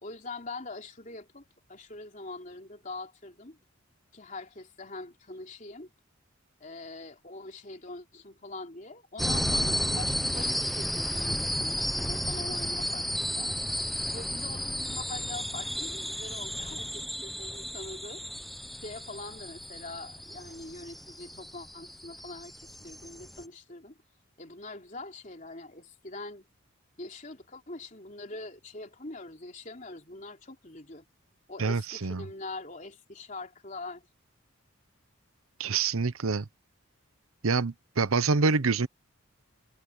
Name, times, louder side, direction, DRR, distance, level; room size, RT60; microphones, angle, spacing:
voice 1, 0.0-3.6 4.1-5.9 6.6-13.6 14.1-18.5 18.8-24.0 24.4-26.5 27.0-31.0 31.5-34.1 38.4-38.5, left 2 dB, 35° left, 3.4 m, -43 dB
sound 1, 9.2-23.4, equal, ahead, 1.0 m, -33 dB
voice 2, 31.6-32.2 35.6-36.5 37.4-38.9, right 4 dB, 80° right, 0.9 m, -26 dB
head